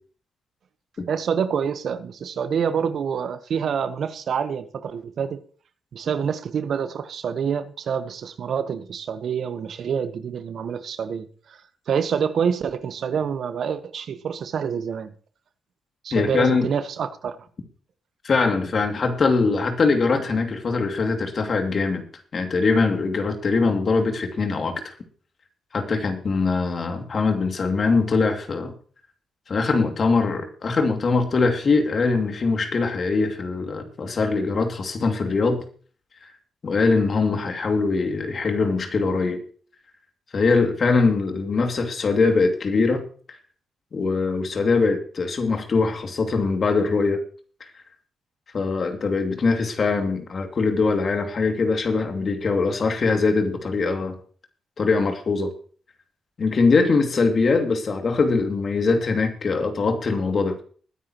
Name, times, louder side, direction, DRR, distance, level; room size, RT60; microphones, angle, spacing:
voice 1, 1.1-5.4 5.9-11.6 11.9-15.1 16.0-17.4, right 7 dB, 65° right, 1.1 m, -27 dB
voice 2, 16.1-16.7 18.2-22.0 22.3-24.9 25.7-28.7 29.5-35.6 36.6-39.4 40.3-43.0 43.9-47.2 48.5-54.2 54.8-55.5 56.4-60.6, left 4 dB, 50° left, 2.5 m, -22 dB
21.0 x 9.9 x 3.0 m
supercardioid pair, 50°, 0 cm